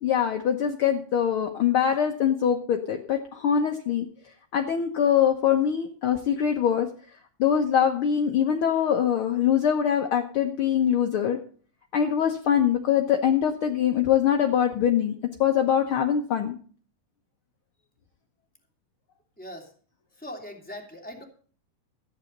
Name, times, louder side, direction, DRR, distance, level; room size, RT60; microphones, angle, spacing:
voice 1, 0.0-4.1 4.5-6.9 7.4-11.4 11.9-15.1 15.4-16.6, left 9 dB, 70° left, 4 dB, 1.3 m, -23 dB
voice 2, 19.4-19.7 20.2-21.2, left 1 dB, 5° left, 2 dB, 2.3 m, -40 dB
14.0 x 9.7 x 5.3 m, 0.43 s
omnidirectional pair, 3.8 m